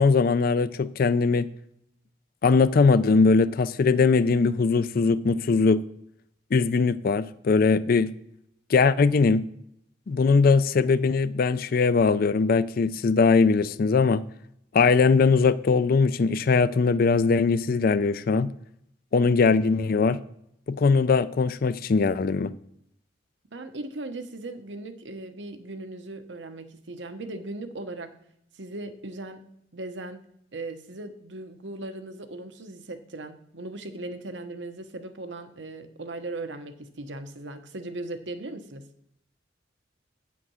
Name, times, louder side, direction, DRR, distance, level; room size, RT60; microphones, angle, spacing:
voice 1, 0.0-1.5 2.4-5.8 6.5-8.1 8.7-9.4 10.1-14.2 14.7-18.5 19.1-20.2 20.7-22.5, left 4 dB, 55° left, 15 dB, 0.4 m, -21 dB
voice 2, 23.5-28.2 28.5-29.5 29.7-38.9, right 2 dB, 85° right, 8 dB, 1.0 m, -38 dB
8.9 x 5.8 x 6.3 m, 0.74 s
head